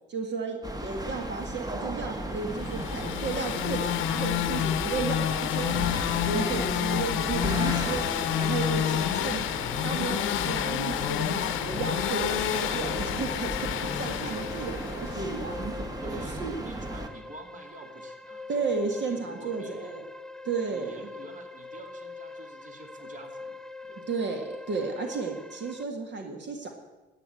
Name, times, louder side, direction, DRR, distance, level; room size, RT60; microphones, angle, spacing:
voice 1, 0.1-5.9 6.2-8.1 8.4-9.6 9.8-15.9 16.4-16.5 18.5-20.0 20.4-21.1 24.1-26.7, right 4 dB, 65° right, 4 dB, 2.0 m, -33 dB
sound 1, 0.6-17.1, right 1 dB, 20° right, 1.4 m, -35 dB
sound 2, 2.5-15.4, left 12 dB, 85° left, 0.6 m, -29 dB
voice 2, 4.3-4.6 8.4-8.7 9.9-10.2 16.0-19.9 20.7-23.6 23.9-24.2, right 2 dB, 40° right, 5 dB, 2.2 m, -46 dB
sound 3, 9.5-25.8, left 3 dB, 5° left, 0.5 m, -44 dB
12.0 x 9.4 x 7.9 m, 1.2 s
cardioid pair, 90°, 20 cm